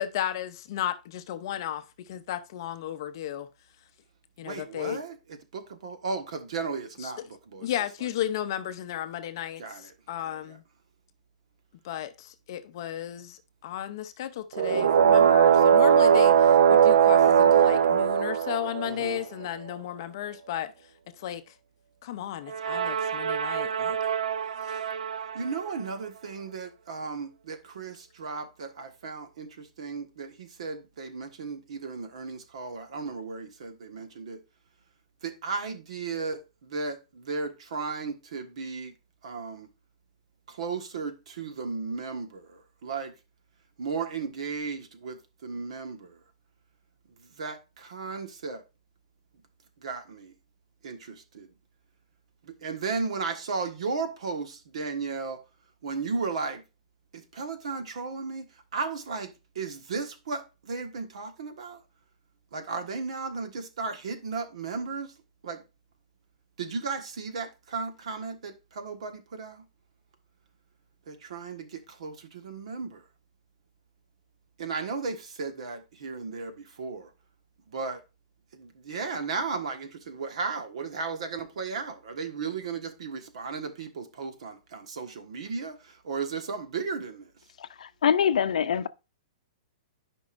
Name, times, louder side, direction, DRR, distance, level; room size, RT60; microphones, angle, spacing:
voice 1, 0.0-3.5 4.4-5.0 7.0-7.1 7.6-10.6 11.8-20.7 21.2-21.4 22.0-24.0, left 11 dB, 35° left, 0.6 m, -34 dB
voice 2, 4.4-7.7 9.6-9.9 10.2-10.6 18.8-19.2 25.3-34.4 35.2-38.9 39.2-39.7 40.5-43.1 43.8-46.2 47.4-48.6 49.8-50.3 50.8-51.5 52.5-55.4 55.8-56.6 57.1-58.5 58.7-61.8 62.5-65.1 65.4-65.6 66.6-69.6 71.1-73.0 74.6-77.1 77.7-78.0 78.5-87.3, right 4 dB, 60° right, 1.4 m, -35 dB
sound 1, 14.5-19.1 22.5-25.4, right 8 dB, 80° right, 0.5 m, -21 dB
voice 3, 87.6-88.9, left 8 dB, 75° left, 0.6 m, -25 dB
11.5 x 5.3 x 2.5 m
hypercardioid pair, 175°, 4 cm